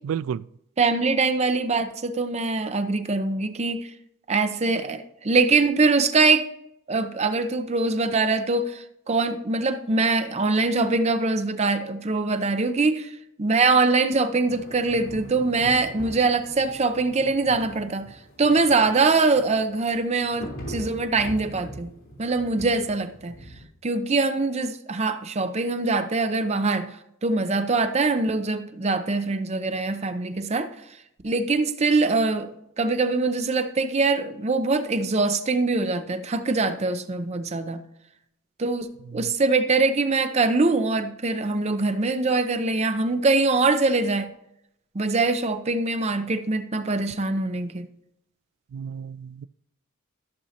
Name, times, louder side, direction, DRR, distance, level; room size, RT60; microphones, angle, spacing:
voice 1, 0.0-0.4 39.2-39.3 48.7-49.5, right 8 dB, 80° right, 0.3 m, -31 dB
voice 2, 0.8-3.9 4.3-6.5 6.9-13.1 13.4-18.1 18.4-21.9 22.2-23.3 23.8-26.9 27.2-30.7 31.2-37.8 38.6-44.3 44.9-47.9, right 3 dB, 35° right, 0.6 m, -23 dB
sound 1, 14.5-23.6, equal, 75° left, 3.6 m, -42 dB
14.0 x 6.2 x 2.8 m
head